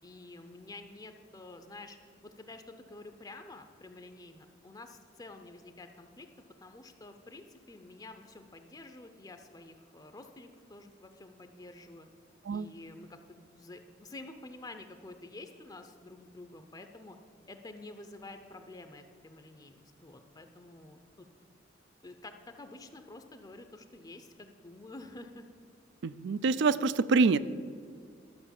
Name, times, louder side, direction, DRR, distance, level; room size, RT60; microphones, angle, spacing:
voice 1, 0.0-2.0 2.2-6.3 6.6-12.1 12.5-17.2 17.5-21.3 22.0-25.5, left 2 dB, 20° left, 7 dB, 0.6 m, -49 dB
voice 2, 26.0-27.4, right 4 dB, 65° right, 16 dB, 0.4 m, -26 dB
12.5 x 6.4 x 7.1 m, 2.2 s
head